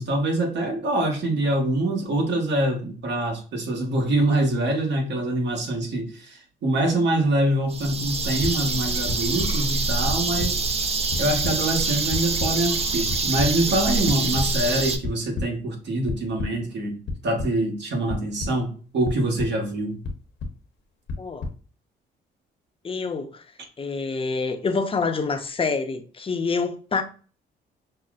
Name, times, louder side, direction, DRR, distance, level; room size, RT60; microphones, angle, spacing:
voice 1, 0.0-10.6 11.2-17.0 17.2-20.0, right 1 dB, 60° right, 1.3 m, -25 dB
sound 1, 7.7-15.0, right 3 dB, 30° right, 0.5 m, -25 dB
sound 2, 8.4-8.5 9.1-9.5 10.1-10.5 10.9-11.5 12.1-12.5 13.1-13.5 14.1-14.5 15.0-15.5 16.1-16.5 17.1-17.5 18.1-18.5 19.0-19.5 20.0-20.5 21.1-21.5, left 3 dB, 65° left, 0.9 m, -29 dB
voice 2, 21.2-21.5 22.8-23.4 23.8-27.0, left 4 dB, 25° left, 0.6 m, -26 dB
5.4 x 2.0 x 2.4 m
cardioid pair, 90°, 20 cm